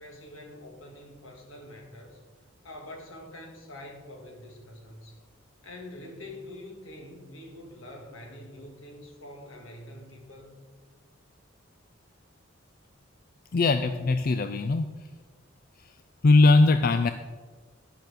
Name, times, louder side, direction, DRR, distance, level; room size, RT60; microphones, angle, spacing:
voice 1, 0.0-2.2 2.6-5.2 5.6-10.6, left 1 dB, 80° left, 2 dB, 2.0 m, -45 dB
voice 2, 13.5-14.9 16.2-17.1, left 3 dB, 45° left, 9 dB, 0.4 m, -20 dB
11.0 x 6.1 x 6.7 m, 1.4 s
head